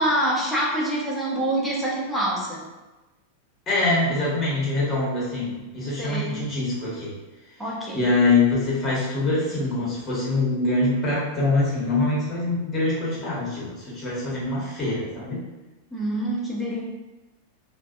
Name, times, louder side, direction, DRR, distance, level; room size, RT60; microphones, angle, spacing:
voice 1, 0.0-2.6 6.0-6.4 7.6-8.0 15.9-16.8, right 1 dB, ahead, -6 dB, 0.7 m, -26 dB
voice 2, 3.7-7.1 7.9-15.4, left 2 dB, 20° left, -6 dB, 0.9 m, -24 dB
2.5 x 2.1 x 2.4 m, 1.1 s
figure-of-eight pair, 90°, 0 cm